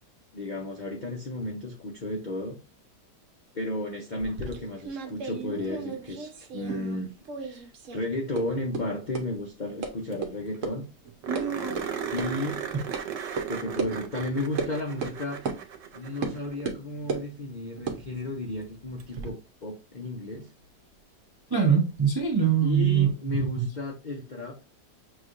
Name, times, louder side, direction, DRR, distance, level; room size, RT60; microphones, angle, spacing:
voice 1, 0.3-2.5 3.5-7.1 7.4-10.8 12.0-12.6 13.5-15.5 15.9-20.5 22.6-24.6, left 2 dB, 65° left, 0 dB, 0.4 m, -33 dB
sound 1, 4.2-7.0 7.3-8.0 8.4-8.5 8.7-8.8 9.1-9.2 9.8-9.9 10.2-10.3 10.6-10.7 11.1-11.4 11.8-11.9 12.2-12.3 12.9-13.0 13.4-13.5 13.8-13.9 14.6-14.7 15.0-15.2 15.5-15.6 16.2-16.4 16.7-17.3 17.8-19.3, right 4 dB, 55° right, 1.0 m, -34 dB
sound 2, 9.9-10.0 10.1-10.2 10.5-10.6 11.2-16.7 19.0-19.1 21.9-22.0, right 8 dB, 85° right, 1.4 m, -36 dB
voice 2, 11.3-11.8 12.7-12.8 21.5-23.7, right 7 dB, 35° right, 0 dB, 0.3 m, -24 dB
6.0 x 3.1 x 2.5 m, 0.31 s
omnidirectional pair, 1.9 m